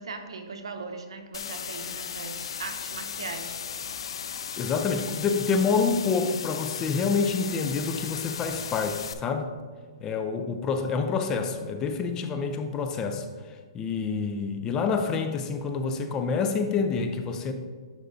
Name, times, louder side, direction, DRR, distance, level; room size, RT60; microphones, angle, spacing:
voice 1, 0.0-3.6, right 4 dB, 85° right, 5 dB, 0.9 m, -39 dB
sound 1, 1.3-9.1, left 7 dB, 75° left, 0.5 m, -36 dB
voice 2, 4.6-9.5 10.0-13.3 13.7-17.5, left 5 dB, 20° left, 7 dB, 0.4 m, -27 dB
11.0 x 4.6 x 2.6 m, 1.5 s
hypercardioid pair, 155°, 3 cm